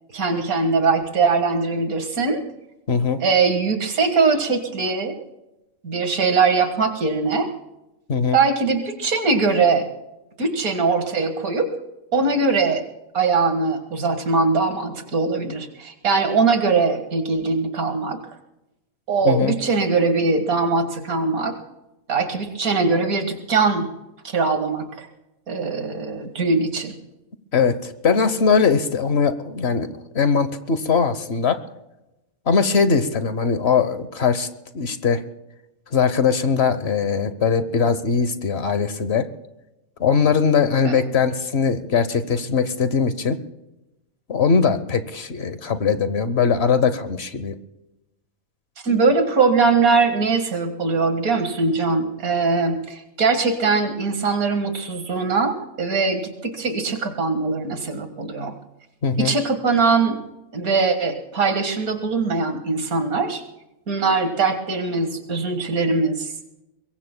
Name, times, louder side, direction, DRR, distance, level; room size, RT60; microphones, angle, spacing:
voice 1, 0.1-2.4 3.2-5.2 5.8-7.5 8.3-9.9 10.4-11.7 12.1-12.8 13.1-18.2 19.1-21.6 22.1-23.9 24.2-25.1 25.5-27.0 40.9-41.0 48.8-58.5 59.2-60.2 60.5-63.4 63.9-66.3, right 4 dB, 85° right, 6 dB, 2.2 m, -21 dB
voice 2, 2.9-3.2 8.1-8.4 19.2-19.5 27.5-31.6 32.5-34.5 34.7-35.2 35.9-39.3 40.0-43.4 44.3-47.6 59.0-59.3, left 5 dB, 50° left, 11 dB, 1.2 m, -20 dB
23.5 x 22.0 x 2.2 m, 0.96 s
omnidirectional pair, 1.5 m